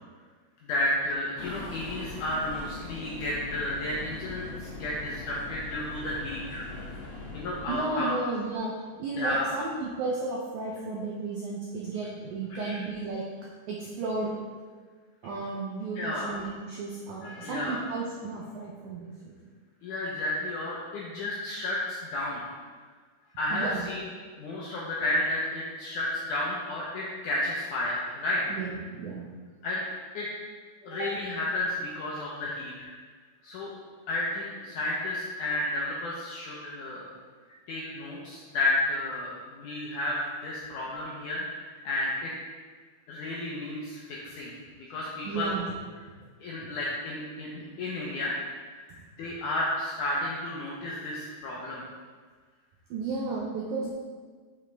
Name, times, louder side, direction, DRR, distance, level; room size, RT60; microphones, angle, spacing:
voice 1, 0.6-6.9 7.3-8.1 9.2-9.5 12.5-12.8 16.0-16.3 17.2-17.8 19.8-22.4 23.3-24.1 24.4-28.4 29.6-29.8 30.1-30.3 30.8-32.9 33.4-33.7 34.1-37.1 37.7-42.3 43.1-45.5 46.4-48.3 48.7-51.8, left 1 dB, 80° left, -5 dB, 1.8 m, -32 dB
sound 1, 1.4-8.1, left 3 dB, 55° left, 2.1 m, -41 dB
voice 2, 7.7-8.7 9.0-13.3 13.7-14.4 15.2-19.4 23.5-23.9 28.5-29.3 30.9-31.1 45.2-45.7 52.9-53.9, right 3 dB, 80° right, -4 dB, 1.7 m, -33 dB
7.0 x 6.2 x 3.3 m, 1.5 s
omnidirectional pair, 4.5 m